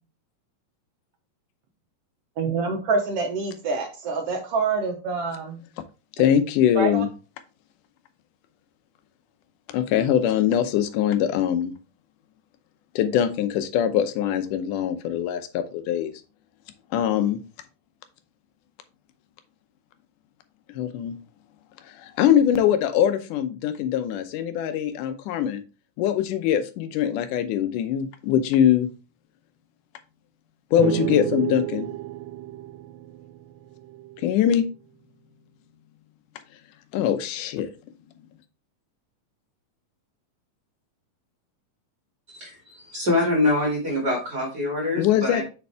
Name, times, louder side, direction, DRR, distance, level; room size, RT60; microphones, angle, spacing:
voice 1, 2.4-5.6 6.8-7.0, right 4 dB, 65° right, 3 dB, 1.6 m, -26 dB
voice 2, 6.2-7.1 9.7-11.7 13.0-16.1 16.9-17.4 20.7-21.2 21.9-25.6 26.0-28.9 30.7-31.9 34.2-34.7 36.9-37.7 45.0-45.4, left 10 dB, 80° left, 9 dB, 2.3 m, -22 dB
sound 1, 30.8-34.4, right 15 dB, 85° right, 2.1 m, -31 dB
voice 3, 42.3-45.4, left 2 dB, 30° right, -4 dB, 3.0 m, -25 dB
6.8 x 5.3 x 3.5 m, 0.33 s
omnidirectional pair, 3.7 m